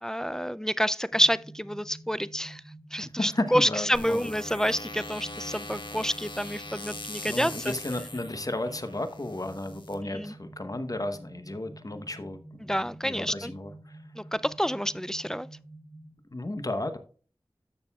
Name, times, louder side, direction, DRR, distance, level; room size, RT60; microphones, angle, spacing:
voice 1, 0.0-2.6 2.9-7.7 10.1-10.3 12.6-13.5 14.3-15.5, equal, 5° left, 0.3 m, -28 dB
sound 1, 1.1-16.1, right 2 dB, 15° right, 3.4 m, -49 dB
voice 2, 3.2-4.3 7.3-14.0 16.3-17.0, left 1 dB, 45° left, 0.9 m, -34 dB
sound 2, 3.9-9.9, left 2 dB, 60° left, 1.6 m, -41 dB
12.5 x 6.5 x 2.3 m
wide cardioid pair, 45°, 9 cm